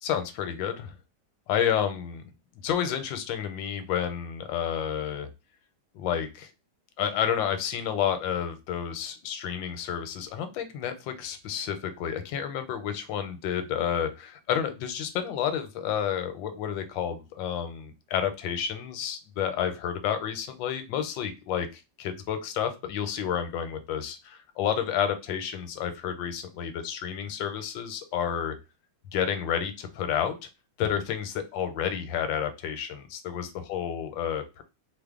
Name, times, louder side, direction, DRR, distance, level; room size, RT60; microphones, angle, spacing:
voice 1, 0.0-1.0 1.5-2.2 2.6-5.3 5.9-6.5 7.0-28.6 29.1-30.3 30.8-34.6, left 9 dB, 85° left, 8 dB, 1.3 m, -30 dB
3.3 x 2.0 x 3.5 m, 0.26 s
omnidirectional pair, 2.0 m